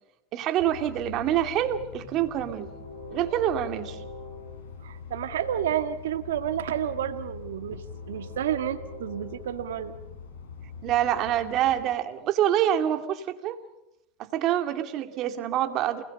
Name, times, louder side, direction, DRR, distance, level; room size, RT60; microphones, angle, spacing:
voice 1, 0.3-2.7 3.1-4.0 10.8-13.6 14.2-16.0, right 11 dB, 50° right, 8 dB, 2.3 m, -26 dB
Train, 0.6-11.8, left 5 dB, 80° left, 5.6 m, -42 dB
voice 2, 4.8-9.9, right 10 dB, 90° right, 9 dB, 1.8 m, -30 dB
29.0 x 20.5 x 5.4 m, 0.86 s
supercardioid pair, 110°, 0 cm